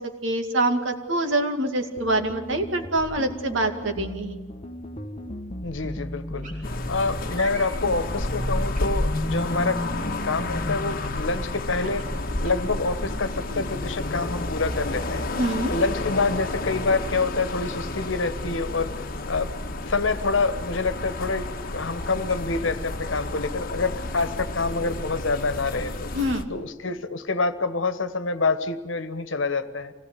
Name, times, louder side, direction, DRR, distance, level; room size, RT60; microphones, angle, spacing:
voice 1, 0.0-4.4 15.3-15.7 26.1-26.5, right 1 dB, 75° right, 6 dB, 2.2 m, -25 dB
sound 1, 2.0-7.3, left 1 dB, 30° left, 1.1 m, -37 dB
voice 2, 5.6-6.5 6.9-12.0 12.4-15.3 15.7-19.5 19.9-26.1 26.5-29.9, left 3 dB, 80° left, 11 dB, 1.3 m, -27 dB
sound 2, 6.4-6.6 7.3-8.0 8.7-9.4 10.9-11.2 11.7-12.8 13.3-13.7, right 1 dB, 40° right, 4.9 m, -41 dB
sound 3, 6.6-26.4, left 2 dB, 50° left, 1.4 m, -30 dB
25.5 x 18.0 x 8.4 m, 1.3 s
head